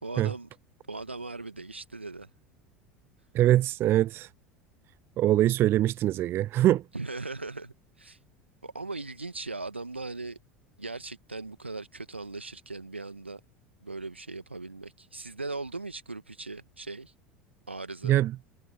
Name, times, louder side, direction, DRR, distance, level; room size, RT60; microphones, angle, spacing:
voice 1, 0.0-0.5 0.9-2.3 6.9-8.2 8.6-10.4 10.8-13.4 13.8-17.1 17.7-18.2, right 3 dB, 90° right, 1.8 m, -39 dB
voice 2, 3.3-4.3 5.2-6.8 18.0-18.3, right 13 dB, 40° right, 0.4 m, -23 dB
figure-of-eight pair, 75°, 6 cm